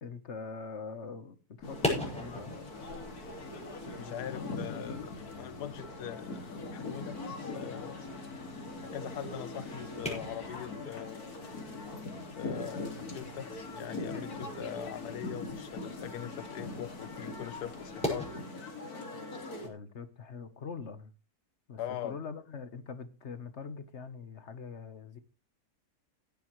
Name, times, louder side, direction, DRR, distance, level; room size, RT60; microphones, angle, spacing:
voice 1, 0.0-2.5 4.0-4.3 19.6-21.1 21.7-25.2, left 5 dB, 50° left, 1.2 m, -43 dB
sound 1, 1.6-19.7, left 2 dB, 70° left, 2.8 m, -41 dB
sound 2, 1.6-18.3, left 1 dB, 5° left, 5.7 m, -43 dB
voice 2, 4.0-7.2 7.5-8.0 8.9-11.2 12.4-18.3 21.8-22.2, left 10 dB, 90° left, 1.3 m, -42 dB
16.5 x 10.5 x 3.1 m
omnidirectional pair, 1.7 m